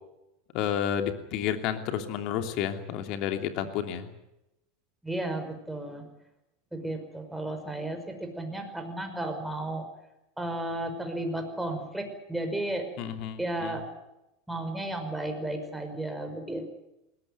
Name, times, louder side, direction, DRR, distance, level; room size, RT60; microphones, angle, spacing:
voice 1, 0.5-4.1 13.0-13.8, left 9 dB, 55° left, 7 dB, 3.0 m, -31 dB
voice 2, 5.0-6.1 6.7-9.9 10.4-12.9 13.4-13.9 14.5-16.8, right 1 dB, 5° right, 5 dB, 5.6 m, -33 dB
20.5 x 18.5 x 9.6 m, 0.90 s
hypercardioid pair, 90°, 0 cm